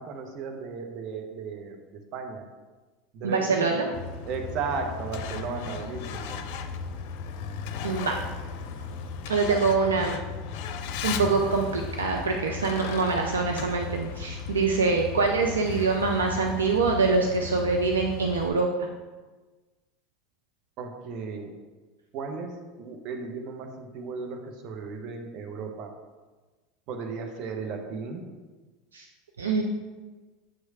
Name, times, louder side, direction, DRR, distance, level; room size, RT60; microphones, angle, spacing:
voice 1, 0.0-2.5 3.1-4.0 4.2-6.4 20.8-21.6 22.1-25.9 26.9-28.3, right 4 dB, 55° right, 4 dB, 1.0 m, -35 dB
voice 2, 3.2-3.9 7.8-8.2 9.3-10.2 11.0-18.7 28.9-29.1 29.4-29.6, right 4 dB, 85° right, 2 dB, 0.5 m, -24 dB
Truck, 3.9-18.5, left 6 dB, 60° left, 0.5 m, -36 dB
7.7 x 3.2 x 4.8 m, 1.3 s
hypercardioid pair, 85°, 0 cm